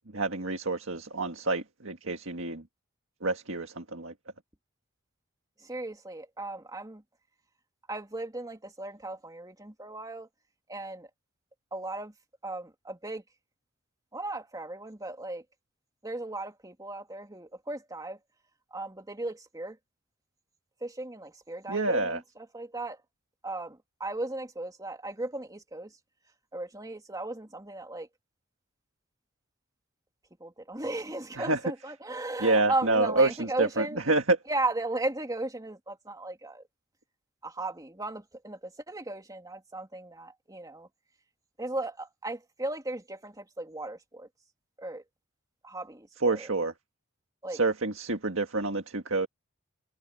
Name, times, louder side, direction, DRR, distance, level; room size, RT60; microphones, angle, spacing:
voice 1, 0.1-2.6 3.2-4.1 21.7-22.2 31.3-31.6 32.4-34.4 46.2-46.7 47.5-49.3, right 2 dB, 65° right, 1.9 m, -28 dB
voice 2, 5.7-7.0 7.9-10.3 10.7-11.1 11.7-12.1 12.4-13.2 14.1-15.4 16.0-18.2 18.7-19.8 20.8-22.2 22.5-23.0 23.4-25.9 26.5-28.1 30.4-34.0 34.5-36.6 37.4-40.9 41.6-44.3 44.8-45.0 45.6-46.5 47.4-47.6, right 2 dB, 15° right, 2.9 m, -36 dB
head